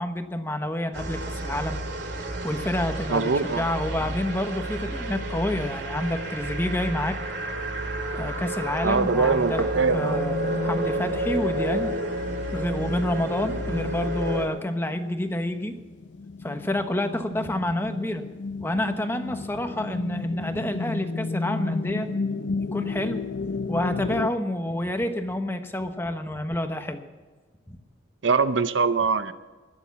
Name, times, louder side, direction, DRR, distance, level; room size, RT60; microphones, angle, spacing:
voice 1, 0.0-1.8 2.4-7.2 8.1-9.7 9.9-12.0 12.5-15.8 16.4-18.2 18.6-22.1 22.5-23.2 23.7-27.0 27.7-27.8, left 1 dB, 10° left, 6 dB, 1.1 m, -28 dB
sound 1, 0.9-14.5, right 1 dB, 65° right, 2.4 m, -30 dB
voice 2, 3.1-3.6 8.8-10.2 28.2-29.3, right 4 dB, 80° right, 12 dB, 0.7 m, -23 dB
sound 2, 9.6-24.3, left 3 dB, 80° left, 0.6 m, -33 dB
21.0 x 7.1 x 7.2 m, 1.4 s
head